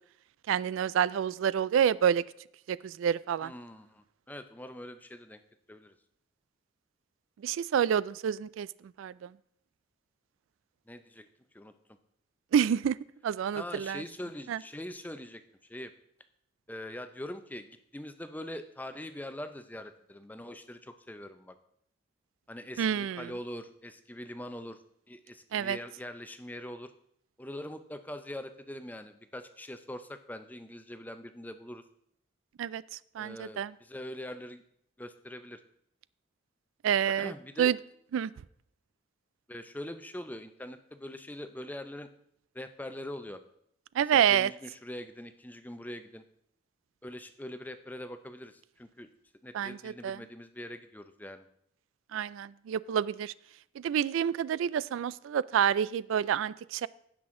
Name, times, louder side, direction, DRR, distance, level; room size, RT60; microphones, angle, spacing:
voice 1, 0.5-2.2 2.7-3.5 7.4-8.7 9.0-9.3 12.5-13.0 13.2-14.0 14.5-14.6 22.8-23.3 25.5-25.8 32.6-32.8 33.2-33.7 36.8-37.3 37.6-37.8 38.1-38.3 44.0-44.5 49.5-50.2 52.1-53.3 53.8-56.9, right 8 dB, 85° right, 20 dB, 0.3 m, -28 dB
voice 2, 3.4-5.4 5.7-5.9 10.9-11.3 11.5-11.7 13.5-15.9 16.7-17.7 17.9-21.5 22.5-24.8 25.1-26.9 27.4-31.8 33.2-34.6 35.0-35.6 37.2-37.7 39.5-42.1 42.5-43.4 44.1-46.2 47.0-49.1 49.4-51.5, left 1 dB, 10° left, 9 dB, 0.5 m, -43 dB
16.0 x 6.1 x 3.7 m, 0.70 s
head